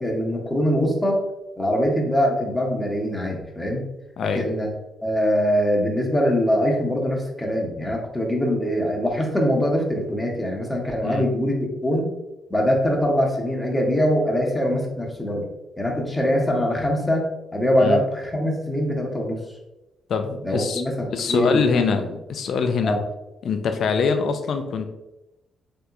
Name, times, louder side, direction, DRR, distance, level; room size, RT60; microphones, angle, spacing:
voice 1, 0.0-1.2 1.6-3.8 4.2-4.7 5.0-11.5 11.8-12.1 12.5-15.5 15.8-17.3 17.5-19.4 20.4-21.8 22.8-23.0, equal, 15° left, 0 dB, 0.9 m, -23 dB
voice 2, 20.1-20.8 21.1-23.0 23.4-24.9, left 5 dB, 65° left, 7 dB, 0.4 m, -23 dB
3.4 x 2.8 x 2.4 m, 0.97 s
supercardioid pair, 65°, 0 cm